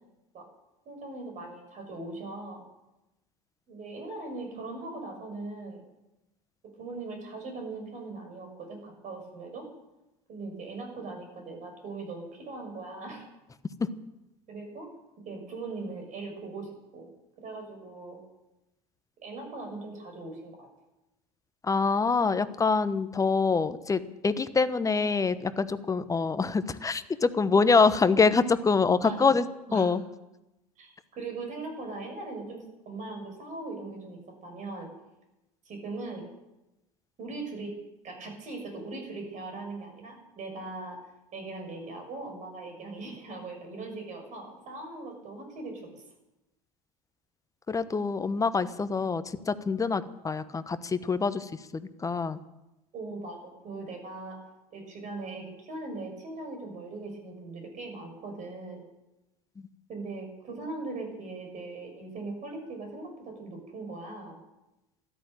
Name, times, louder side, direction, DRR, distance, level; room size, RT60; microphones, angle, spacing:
voice 1, 0.8-2.6 3.7-5.8 6.8-9.7 10.3-13.3 14.5-14.9 15.3-17.1 17.4-18.2 19.2-20.7 29.0-29.3 29.7-29.9 30.8-34.9 35.6-36.3 37.2-37.7 38.0-41.0 41.3-46.0 52.9-54.4 54.7-58.8 59.9-64.4, right 3 dB, 45° right, 4 dB, 6.2 m, -40 dB
voice 2, 21.6-29.5 29.7-30.0 47.7-52.4, left 4 dB, 15° left, 13 dB, 1.0 m, -25 dB
13.5 x 11.5 x 9.0 m, 0.96 s
figure-of-eight pair, 75°, 19 cm